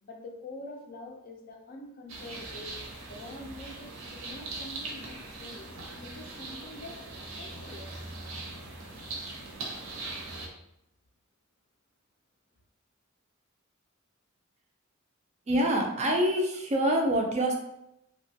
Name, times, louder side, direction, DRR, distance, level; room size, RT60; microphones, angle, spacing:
voice 1, 0.0-2.7 3.1-8.2, left 2 dB, 45° left, 2 dB, 0.4 m, -46 dB
sound 1, 2.1-10.5, right 2 dB, 80° right, 0.6 m, -41 dB
voice 2, 15.5-17.5, equal, 35° right, 2 dB, 0.4 m, -25 dB
2.8 x 2.2 x 2.7 m, 0.81 s
head